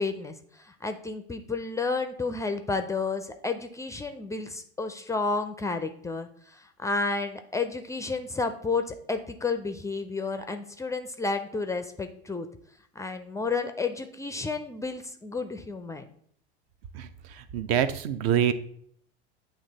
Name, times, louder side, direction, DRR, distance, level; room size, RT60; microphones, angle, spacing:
voice 1, 0.0-12.5 13.0-16.1, left 4 dB, 10° left, 8 dB, 0.4 m, -31 dB
voice 2, 16.9-18.5, right 9 dB, 50° right, 12 dB, 0.6 m, -26 dB
8.7 x 3.0 x 4.0 m, 0.62 s
hypercardioid pair, 90°, 33 cm